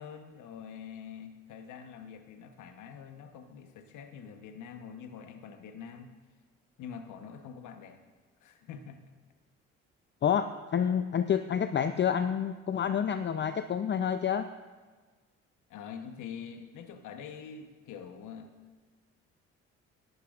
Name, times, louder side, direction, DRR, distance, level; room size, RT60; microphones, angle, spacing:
voice 1, 0.0-6.1 6.8-8.0 8.4-9.0 15.7-18.5, left 7 dB, 70° left, 7 dB, 1.0 m, -45 dB
voice 2, 10.2-14.5, left 8 dB, 35° left, 10 dB, 0.5 m, -28 dB
18.0 x 12.0 x 2.5 m, 1.4 s
hypercardioid pair, 60°, 32 cm